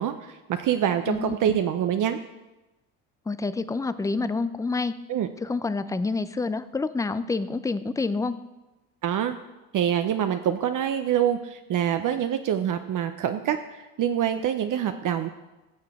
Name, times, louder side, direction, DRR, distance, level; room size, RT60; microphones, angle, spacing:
voice 1, 0.0-2.2 5.1-5.3 9.0-9.4 9.7-15.3, right 9 dB, 50° right, 8 dB, 0.6 m, -25 dB
voice 2, 1.1-1.6 3.3-4.9 5.4-8.4, left 3 dB, 10° left, 13 dB, 0.3 m, -28 dB
16.0 x 6.6 x 3.5 m, 1.1 s
supercardioid pair, 80°, 42 cm